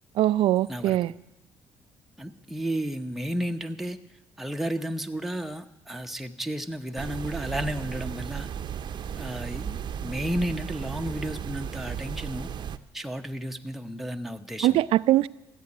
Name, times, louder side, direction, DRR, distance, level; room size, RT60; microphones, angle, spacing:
voice 1, 0.2-1.1 14.6-15.3, right 14 dB, 75° right, 17 dB, 0.4 m, -22 dB
voice 2, 2.2-4.0 4.4-8.5 9.2-12.5 12.9-14.8, equal, ahead, 5 dB, 1.0 m, -32 dB
sound 1, 7.0-12.8, right 8 dB, 50° right, 0.7 m, -35 dB
15.0 x 8.4 x 9.8 m, 0.92 s
cardioid pair, 90°, 9 cm